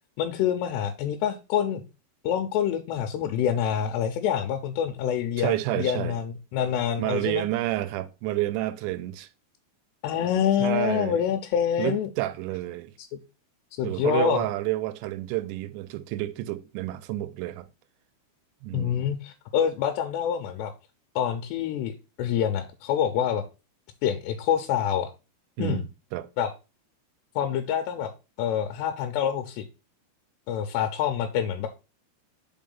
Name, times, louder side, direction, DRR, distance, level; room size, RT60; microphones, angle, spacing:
voice 1, 0.2-1.8 2.2-7.5 10.0-12.1 13.7-14.5 18.7-20.7 21.2-23.4 24.0-25.1 25.6-25.8 26.4-26.5 27.4-28.1 28.4-29.7 30.5-31.7, left 9 dB, 80° left, 2.7 m, -26 dB
voice 2, 5.4-6.2 7.0-9.3 10.6-11.2 11.8-12.9 13.8-17.7 18.6-19.0 25.6-25.8 26.1-26.3, right 15 dB, 80° right, 2.8 m, -29 dB
5.5 x 4.9 x 5.4 m
omnidirectional pair, 5.3 m